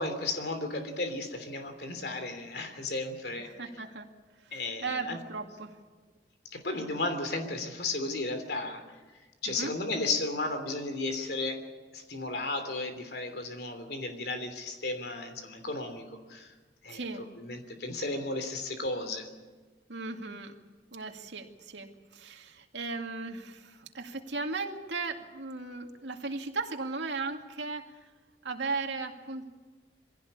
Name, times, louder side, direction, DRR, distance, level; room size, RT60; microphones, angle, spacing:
voice 1, 0.0-3.7 4.5-5.2 6.5-8.8 9.4-11.6 11.9-16.5 16.8-17.0 17.4-19.3, left 2 dB, 65° left, 7 dB, 3.1 m, -34 dB
voice 2, 3.4-4.1 4.4-5.8 9.5-9.7 16.9-17.3 19.9-20.6 20.9-27.9 28.4-29.4, right 3 dB, 90° right, 3 dB, 2.3 m, -37 dB
22.5 x 16.5 x 8.6 m, 1.3 s
head